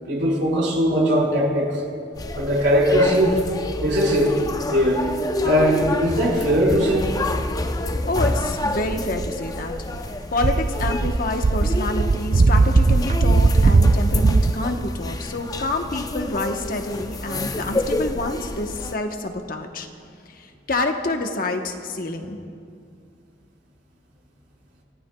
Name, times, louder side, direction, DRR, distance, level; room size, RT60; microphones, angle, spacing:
voice 1, 0.1-1.8 2.3-3.4 3.8-4.3 4.7-5.0 5.4-7.1, equal, 75° right, -4 dB, 4.6 m, -19 dB
sound 1, 2.1-18.9, left 1 dB, 20° left, 0.5 m, -29 dB
voice 2, 8.1-9.7 10.3-19.9 20.3-22.4, left 2 dB, 50° left, 4 dB, 1.0 m, -27 dB
sound 2, 8.9-10.0 10.3-14.5, right 3 dB, 40° right, 0.3 m, -18 dB
28.5 x 15.0 x 2.3 m, 2.3 s
head